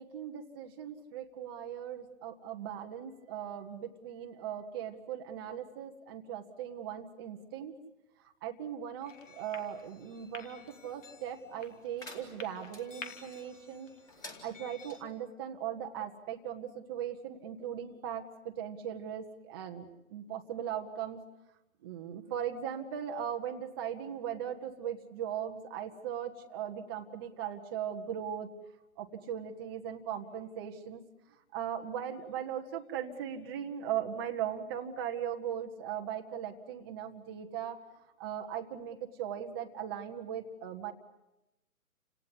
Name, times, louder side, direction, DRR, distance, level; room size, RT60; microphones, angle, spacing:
voice 1, 0.0-7.7 8.4-13.9 14.4-21.2 21.8-28.5 29.0-31.0 31.5-37.8 38.2-40.9, right 9 dB, 15° right, 3 dB, 1.0 m, -39 dB
sound 1, 9.0-15.0, left 5 dB, 60° left, 3.3 m, -51 dB
sound 2, 12.0-12.8 14.1-15.0, left 1 dB, 10° left, 2.4 m, -49 dB
29.5 x 18.0 x 9.8 m, 0.96 s
figure-of-eight pair, 150°, 42 cm